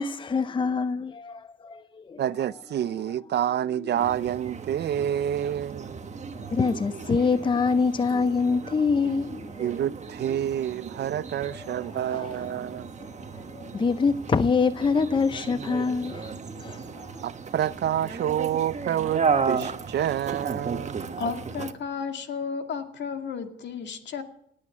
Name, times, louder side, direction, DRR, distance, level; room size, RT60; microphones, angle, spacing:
voice 1, 0.0-2.2 3.8-4.2 6.3-9.7 11.5-17.2, left 5 dB, 25° left, 0.6 m, -26 dB
voice 2, 2.2-6.0 9.6-12.9 17.2-21.0, right 10 dB, 60° right, 0.5 m, -28 dB
sound 1, 4.0-21.7, right 5 dB, 35° right, 1.3 m, -34 dB
voice 3, 21.2-24.2, left 5 dB, 65° left, 2.3 m, -33 dB
18.0 x 8.6 x 8.5 m
cardioid pair, 90°, 20 cm